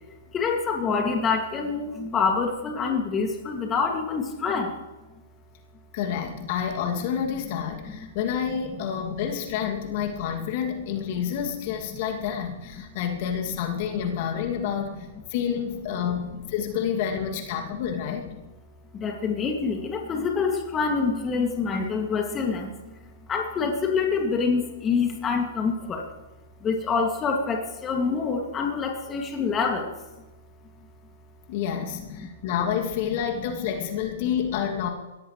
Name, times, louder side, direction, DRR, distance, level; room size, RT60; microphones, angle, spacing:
voice 1, 0.3-4.7 18.9-22.9 23.3-26.1 26.6-29.9, left 5 dB, 20° left, 2 dB, 2.4 m, -26 dB
voice 2, 5.9-18.2 31.5-34.9, left 8 dB, 50° left, 2 dB, 2.6 m, -29 dB
23.0 x 17.5 x 3.3 m, 1.1 s
figure-of-eight pair, 110°, 0 cm